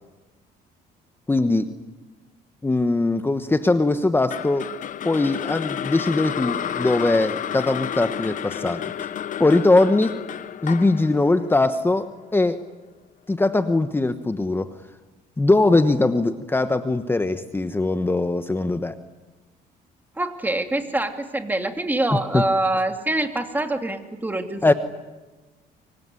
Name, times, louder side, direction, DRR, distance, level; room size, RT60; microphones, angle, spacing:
voice 1, 1.3-1.7 2.6-4.7 5.0-8.9 9.4-10.2 10.6-12.6 13.3-14.7 15.4-19.0 22.1-22.4 24.6-24.7, left 2 dB, 15° left, 10 dB, 1.1 m, -21 dB
sound 1, 4.3-12.5, left 9 dB, 50° left, 1.1 m, -31 dB
voice 2, 20.2-24.7, right 2 dB, 10° right, 6 dB, 2.8 m, -25 dB
24.5 x 24.5 x 9.8 m, 1.2 s
cardioid pair, 110°, 17 cm